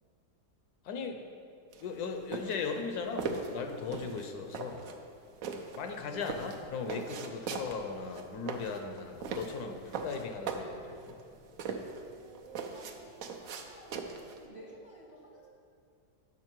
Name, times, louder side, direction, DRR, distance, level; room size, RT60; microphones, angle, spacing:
voice 1, 0.8-1.2 1.8-4.9 5.7-11.2, left 5 dB, 70° left, 5 dB, 1.0 m, -38 dB
sound 1, 1.7-14.4, right 5 dB, 65° right, 1.0 m, -40 dB
Walk footsteps, 5.7-12.2, left 2 dB, 90° left, 0.3 m, -59 dB
voice 2, 12.1-15.5, right 2 dB, 30° right, -2 dB, 0.7 m, -53 dB
8.5 x 6.2 x 4.5 m, 2.5 s
omnidirectional pair, 1.8 m